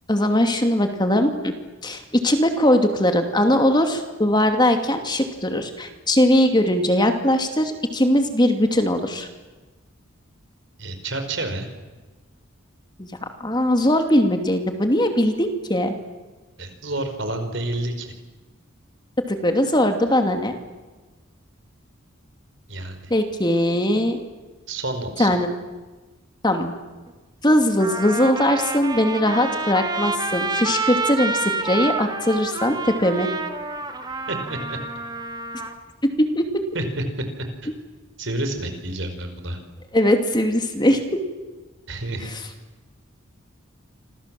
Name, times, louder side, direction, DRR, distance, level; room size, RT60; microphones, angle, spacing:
voice 1, 0.1-1.5 1.8-9.3 13.0-13.1 13.4-15.9 19.3-20.5 23.1-24.2 25.2-25.6 26.4-26.7 27.4-33.3 36.3-36.4 39.9-41.0 42.2-42.4, left 1 dB, 20° left, 5 dB, 2.6 m, -20 dB
voice 2, 10.8-11.7 16.6-18.1 22.7-23.1 24.7-25.3 34.3-34.8 36.7-36.8 37.6-37.7 38.2-39.6 41.9-42.3, right 2 dB, 60° right, 7 dB, 5.0 m, -29 dB
Trumpet, 27.1-27.2 27.8-35.7, right 3 dB, 20° right, 2.1 m, -28 dB
29.0 x 26.5 x 7.7 m, 1.2 s
head